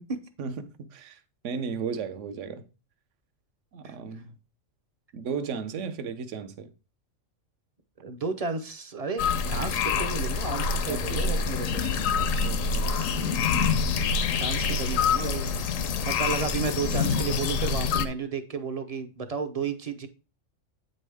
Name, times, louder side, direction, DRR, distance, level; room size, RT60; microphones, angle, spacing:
voice 1, 0.4-2.6 3.7-4.4 5.1-6.7 10.9-11.3 11.8-13.1, right 5 dB, 70° right, 1.0 m, -36 dB
voice 2, 8.0-11.8 14.3-15.5 16.0-20.1, right 5 dB, 40° right, 0.6 m, -32 dB
sound 1, 9.2-18.1, left 5 dB, 80° left, 1.1 m, -26 dB
8.3 x 5.3 x 3.4 m
omnidirectional pair, 1.3 m